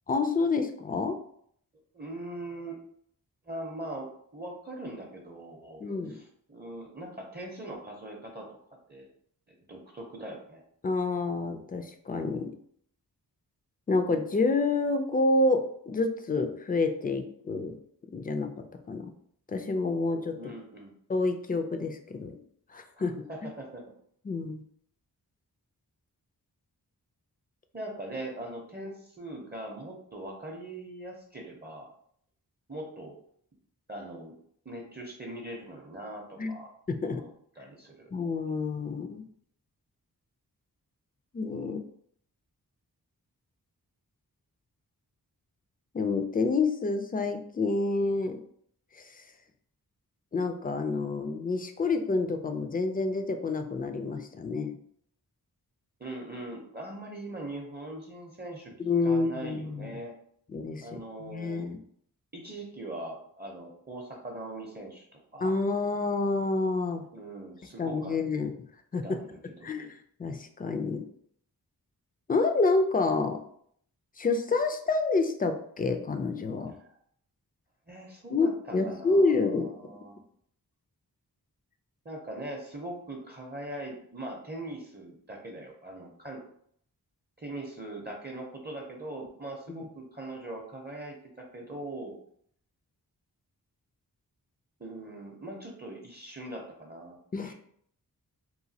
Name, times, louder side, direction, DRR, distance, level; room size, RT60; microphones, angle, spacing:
voice 1, 0.1-1.2 5.8-6.2 10.8-12.5 13.9-17.8 18.1-19.1 19.5-20.5 21.1-22.4 22.7-23.3 24.3-24.6 36.4-36.5 36.9-37.2 38.1-39.3 41.3-41.8 45.9-48.4 48.9-49.2 50.3-54.8 58.8-60.0 60.5-61.8 65.4-67.1 67.8-68.5 68.9-69.2 69.6-69.9 70.2-71.0 72.3-73.4 74.2-76.7 78.3-79.7 89.7-89.8 97.3-97.5, left 3 dB, 25° left, 6 dB, 0.3 m, -28 dB
voice 2, 1.9-2.8 3.4-5.8 6.1-8.6 8.9-9.1 9.7-10.6 20.3-20.9 22.9-23.8 27.7-31.9 32.7-33.2 33.9-34.4 34.6-36.7 37.0-38.1 56.0-58.8 59.0-60.1 60.8-61.7 62.3-65.1 65.3-65.6 67.1-68.2 69.0-69.9 76.8-77.0 77.9-80.2 82.0-86.4 87.4-92.2 94.8-97.5, right 1 dB, 25° right, 0 dB, 0.6 m, -41 dB
3.0 x 2.3 x 2.7 m, 0.65 s
wide cardioid pair, 60°, 37 cm